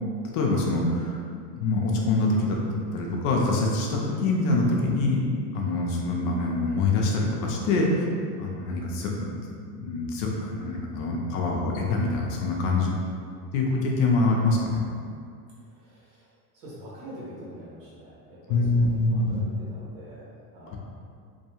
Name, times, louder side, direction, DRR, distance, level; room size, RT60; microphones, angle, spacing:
voice 1, 0.3-1.2 1.5-5.2 5.5-8.1 8.4-9.4 9.7-13.0 13.5-14.8 18.5-19.4, left 2 dB, 55° left, -1 dB, 0.6 m, -25 dB
voice 2, 15.6-20.8, right 1 dB, 55° right, -7 dB, 1.2 m, -45 dB
2.6 x 2.2 x 2.8 m, 2.2 s
supercardioid pair, 130°, 48 cm